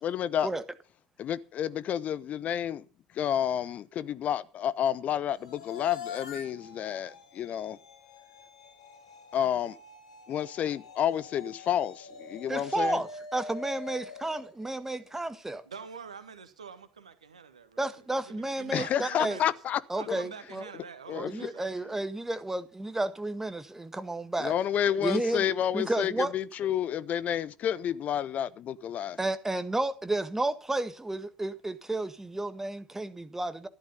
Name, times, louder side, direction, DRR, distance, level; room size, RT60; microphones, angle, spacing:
voice 1, 0.0-0.5 1.2-2.8 3.1-7.8 9.3-9.8 10.3-13.0 18.7-19.8 20.1-20.2 21.1-21.5 24.4-29.2, left 10 dB, 45° left, 0.8 m, -30 dB
sound 1, 5.3-15.5, left 5 dB, 75° left, 2.1 m, -45 dB
voice 2, 12.5-15.6 17.8-19.4 19.9-20.6 21.1-24.5 25.0-25.4 25.7-26.3 29.2-33.7, right 2 dB, 10° right, 1.7 m, -32 dB
voice 3, 15.6-19.5 20.0-21.7, right 6 dB, 80° right, 1.6 m, -46 dB
14.5 x 12.5 x 5.5 m
figure-of-eight pair, 60°, 3 cm